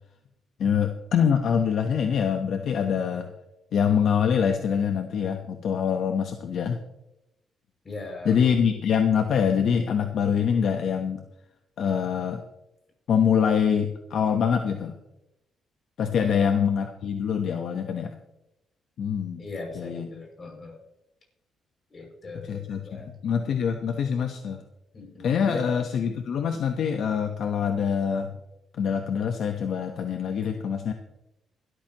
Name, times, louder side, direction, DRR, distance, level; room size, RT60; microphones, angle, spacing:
voice 1, 0.6-3.3 3.7-6.8 8.2-11.2 11.8-12.4 13.1-14.9 16.0-18.2 19.0-19.4 19.7-20.1 22.4-24.6 25.2-28.3 28.8-30.9, left 7 dB, 65° left, 6 dB, 1.0 m, -25 dB
voice 2, 7.8-8.4 16.2-16.4 19.4-20.8 21.9-23.1 24.9-25.6 30.4-30.5, left 3 dB, 40° left, 0 dB, 6.2 m, -38 dB
18.5 x 13.5 x 3.0 m, 0.88 s
cardioid pair, 90°, 0 cm